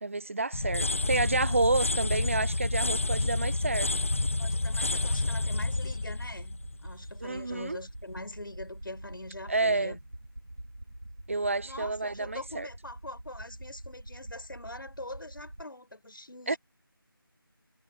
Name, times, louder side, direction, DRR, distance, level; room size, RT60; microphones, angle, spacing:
voice 1, 0.0-3.9 7.2-7.8 9.5-10.0 11.3-12.7 16.5-16.6, right 3 dB, 35° right, 0.9 m, -29 dB
sound 1, 0.5-7.4, left 2 dB, 35° left, 0.7 m, -29 dB
sound 2, 3.7-15.6, right 1 dB, 80° right, 3.8 m, -46 dB
voice 2, 4.4-10.0 11.6-16.6, left 1 dB, 65° left, 6.2 m, -43 dB
figure-of-eight pair, 170°, 12 cm